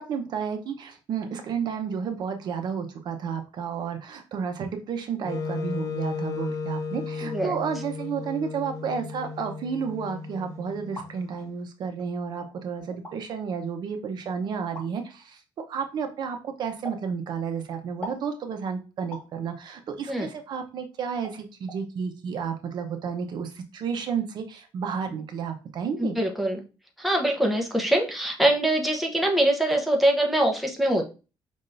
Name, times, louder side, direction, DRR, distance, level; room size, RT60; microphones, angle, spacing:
voice 1, 0.0-15.4 15.7-26.2, right 6 dB, 55° right, 6 dB, 0.8 m, -31 dB
Wind instrument woodwind instrument, 5.2-11.3, left 4 dB, 40° left, 0.7 m, -34 dB
voice 2, 7.2-7.5 20.1-20.3 26.0-26.6 27.0-31.0, right 1 dB, ahead, 1 dB, 0.8 m, -23 dB
sound 1, 10.7-11.1 12.0-12.1 12.9-13.2 14.7-14.9 16.8-17.1 18.0-18.3 19.1-19.3 20.6-20.7 21.2-21.4 21.7-21.8, equal, 15° left, 1.6 m, -39 dB
5.4 x 3.6 x 2.6 m, 0.32 s
cardioid pair, 140°, 9 cm